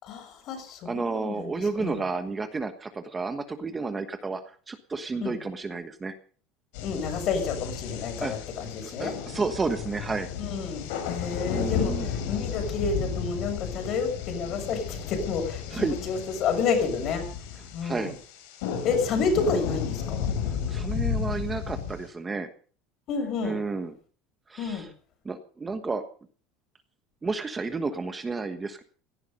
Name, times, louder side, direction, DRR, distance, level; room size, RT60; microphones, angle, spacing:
voice 1, 0.0-2.0 5.2-5.4 6.8-9.1 10.4-17.3 17.7-18.1 18.8-20.3 23.1-23.6 24.6-24.9, left 5 dB, 45° left, 5 dB, 6.8 m, -30 dB
voice 2, 0.8-4.4 4.7-6.2 8.2-8.3 8.8-10.3 11.5-12.1 15.7-16.0 17.8-18.1 20.5-22.5 23.4-23.9 24.5-24.9 25.2-26.0 27.2-28.8, right 4 dB, 15° right, 8 dB, 1.3 m, -31 dB
sound 1, 6.7-22.1, left 7 dB, 80° left, 6.2 m, -33 dB
17.5 x 15.0 x 5.4 m, 0.42 s
cardioid pair, 160°, 0 cm